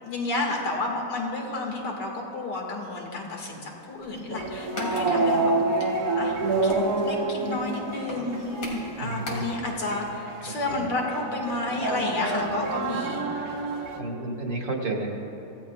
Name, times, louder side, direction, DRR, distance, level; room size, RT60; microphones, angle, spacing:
voice 1, 0.0-5.5 6.1-6.4 6.6-13.3, left 2 dB, 70° left, -1 dB, 2.6 m, -31 dB
sound 1, 3.9-9.8 10.0-10.1 10.4-10.5, left 1 dB, 90° left, 3.6 m, -40 dB
sound 2, 4.3-14.0, right 2 dB, 60° right, 1.6 m, -28 dB
voice 2, 9.0-9.5 10.5-10.9 14.0-15.1, right 2 dB, 80° right, -1 dB, 2.6 m, -31 dB
25.5 x 16.0 x 2.4 m, 2.9 s
omnidirectional pair, 1.9 m